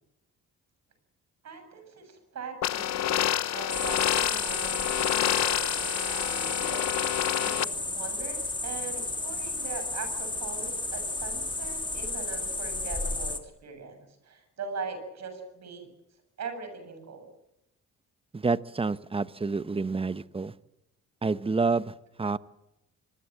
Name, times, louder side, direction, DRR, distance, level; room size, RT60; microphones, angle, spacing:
voice 1, 1.4-3.3 3.5-15.9 16.4-17.3, right 5 dB, 60° right, 7 dB, 7.4 m, -41 dB
sound 1, 2.6-7.6, left 11 dB, 60° left, 0.9 m, -28 dB
sound 2, 3.7-13.4, left 2 dB, 15° left, 2.8 m, -33 dB
voice 2, 18.3-20.5 21.2-22.4, right 4 dB, 20° right, 16 dB, 1.0 m, -28 dB
25.0 x 20.5 x 7.5 m, 0.91 s
cardioid pair, 90°, 30 cm